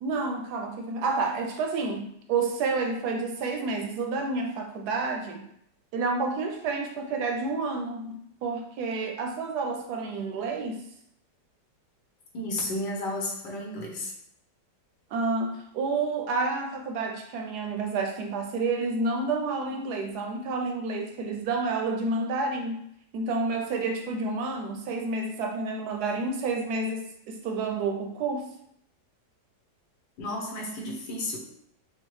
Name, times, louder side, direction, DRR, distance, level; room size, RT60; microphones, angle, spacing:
voice 1, 0.0-5.4 5.9-10.8 15.1-22.8 23.1-28.5, right 3 dB, 70° right, 3 dB, 1.0 m, -29 dB
voice 2, 12.3-14.1 30.2-31.4, left 1 dB, 85° left, -1 dB, 1.7 m, -32 dB
6.1 x 2.3 x 3.1 m, 0.72 s
omnidirectional pair, 1.9 m